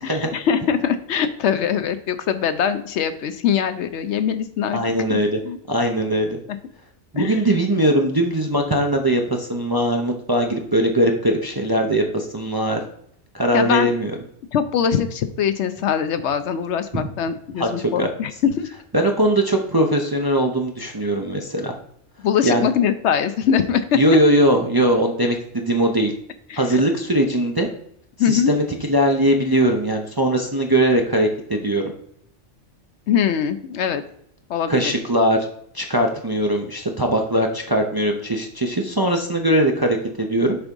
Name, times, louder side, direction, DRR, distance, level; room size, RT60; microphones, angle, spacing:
voice 1, 0.0-4.8 5.1-5.2 5.4-5.6 6.5-6.6 7.2-7.4 13.5-13.9 14.5-18.7 22.2-24.0 26.5-26.8 28.2-28.5 33.1-34.0 34.5-34.9, left 8 dB, 75° left, 10 dB, 0.9 m, -22 dB
voice 2, 4.7-5.4 5.7-6.4 7.1-12.8 13.3-14.1 16.9-17.1 17.6-18.1 18.9-21.7 22.4-22.7 23.9-26.1 26.6-27.7 28.3-31.9 34.7-35.5 35.7-40.6, right 1 dB, 25° right, 2 dB, 0.5 m, -20 dB
6.8 x 3.6 x 5.3 m, 0.70 s
omnidirectional pair, 1.3 m